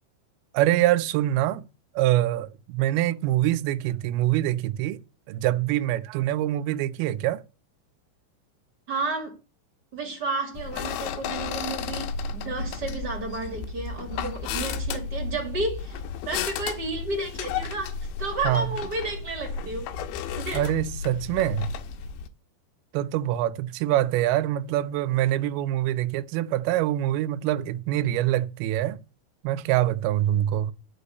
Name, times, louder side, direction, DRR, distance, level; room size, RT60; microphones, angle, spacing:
voice 1, 0.5-1.6 1.9-5.0 5.3-7.4 18.4-18.7 20.5-21.7 22.9-29.0 29.4-30.7, right 14 dB, 80° right, 2.3 m, -25 dB
voice 2, 8.9-9.3 9.9-19.9 20.3-20.7, right 3 dB, 35° right, 1.7 m, -32 dB
sound 1, 10.5-22.3, left 5 dB, 85° left, 3.2 m, -33 dB
11.0 x 5.2 x 7.9 m
omnidirectional pair, 5.3 m